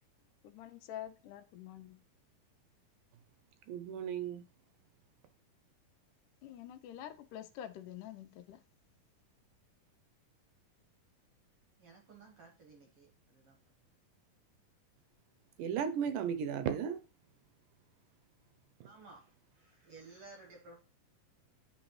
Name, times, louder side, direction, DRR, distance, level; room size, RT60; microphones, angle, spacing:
voice 1, 0.4-2.1 6.4-8.6, left 11 dB, 80° left, 2.1 m, -47 dB
voice 2, 3.7-4.4 15.6-17.0 18.8-18.9, right 8 dB, 80° right, 2.2 m, -35 dB
voice 3, 11.8-13.6 18.8-20.8, right 3 dB, 60° right, 1.6 m, -56 dB
10.5 x 3.9 x 3.1 m
omnidirectional pair, 3.8 m